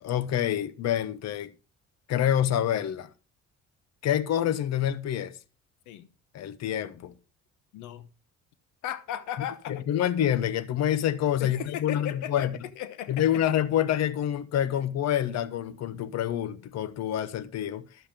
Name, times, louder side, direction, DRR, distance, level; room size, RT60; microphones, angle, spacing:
voice 1, 0.0-1.5 2.1-3.1 4.0-5.3 6.3-7.1 9.7-12.6 13.1-17.9, left 10 dB, 65° left, 0.9 m, -27 dB
voice 2, 7.7-8.1 8.8-9.9 11.4-12.5 12.8-13.4, left 11 dB, 90° left, 0.9 m, -36 dB
12.5 x 7.3 x 5.1 m
cardioid pair, 105°, 29 cm